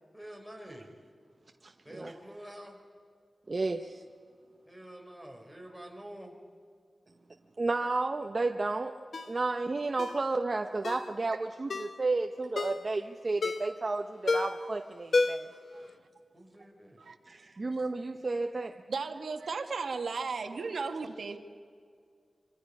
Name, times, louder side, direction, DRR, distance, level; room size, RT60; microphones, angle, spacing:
voice 1, 0.1-0.9 1.8-2.8 4.7-6.4 16.3-17.0, right 1 dB, ahead, 0 dB, 4.0 m, -47 dB
voice 2, 1.6-2.1 3.5-4.0 7.6-9.0 9.3-15.5 17.3-18.8, right 3 dB, 40° right, 5 dB, 0.8 m, -32 dB
Ringtone, 9.1-9.3 10.0-10.2 10.8-11.1 11.7-12.0 12.6-12.8 13.4-13.8 14.3-14.7 15.1-15.6 15.9-16.0, left 3 dB, 75° left, 1.0 m, -30 dB
voice 3, 15.7-16.1 17.0-17.2 18.9-21.4, right 4 dB, 90° right, 5 dB, 1.3 m, -35 dB
26.0 x 24.0 x 5.4 m, 2.2 s
wide cardioid pair, 105°, 0 cm